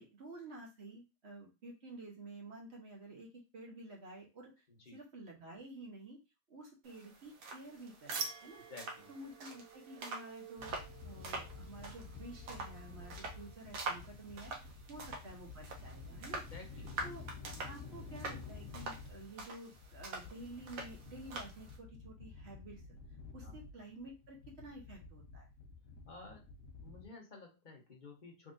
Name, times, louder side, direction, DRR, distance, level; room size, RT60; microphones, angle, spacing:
voice 1, 0.0-4.5 4.9-6.2 6.5-8.6 9.1-10.7 11.0-16.4 17.0-17.2 17.6-22.8 23.3-25.5, right 2 dB, 45° right, -1 dB, 1.3 m, -51 dB
sound 1, 6.8-21.8, right 3 dB, 85° right, 1.5 m, -46 dB
sound 2, 8.1-13.6, right 5 dB, 70° right, 0.6 m, -48 dB
voice 2, 8.7-9.1 16.5-17.1 23.4-23.5 26.1-26.5 26.8-28.5, left 3 dB, 35° left, 0 dB, 1.0 m, -53 dB
sound 3, 10.6-27.0, left 4 dB, 60° left, 1.2 m, -51 dB
3.8 x 3.3 x 2.5 m, 0.26 s
omnidirectional pair, 1.7 m